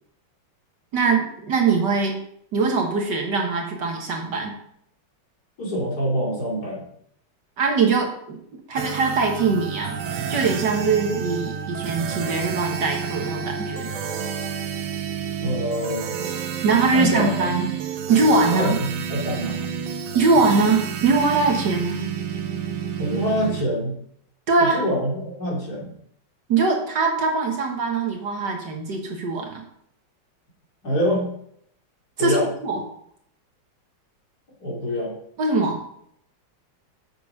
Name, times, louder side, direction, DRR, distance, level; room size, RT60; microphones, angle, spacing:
voice 1, 0.9-2.2 2.5-4.5 7.6-8.4 8.7-10.0 10.3-13.9 16.6-17.7 18.1-18.8 20.1-22.0 24.5-24.8 26.5-29.6 32.2-32.4 32.6-32.8 35.4-35.8, right 4 dB, 60° right, 1 dB, 1.9 m, -22 dB
voice 2, 5.6-6.9 15.4-16.3 16.9-17.4 18.5-19.7 23.0-23.9 24.6-25.9 30.8-31.4 32.2-32.5 34.6-35.1, equal, 50° left, -4 dB, 3.1 m, -25 dB
sound 1, 8.8-23.7, right 7 dB, 80° right, 1.6 m, -30 dB
7.7 x 6.7 x 4.9 m, 0.70 s
omnidirectional pair, 2.2 m